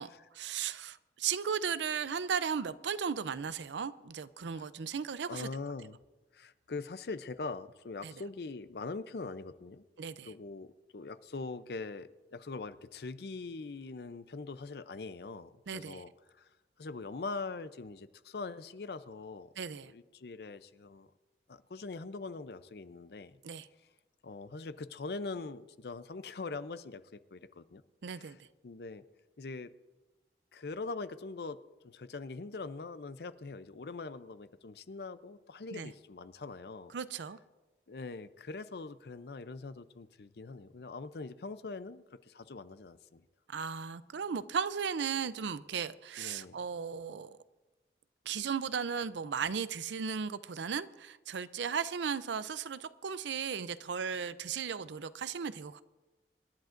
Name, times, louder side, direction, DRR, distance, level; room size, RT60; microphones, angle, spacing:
voice 1, 0.0-5.5 8.0-8.1 10.0-10.3 15.7-16.0 19.6-19.9 23.4-23.7 28.0-28.4 35.7-35.9 36.9-37.4 43.5-47.4 48.3-55.8, right 6 dB, 90° right, 0.5 m, -36 dB
voice 2, 5.3-6.0 6.3-9.8 10.2-16.5 16.8-19.5 19.8-21.1 21.5-23.4 24.2-27.8 28.1-28.4 28.6-29.0 29.4-29.7 30.5-31.6 31.8-36.9 37.9-43.2 46.2-46.6, left 3 dB, 65° left, 0.5 m, -42 dB
26.5 x 10.5 x 2.5 m
head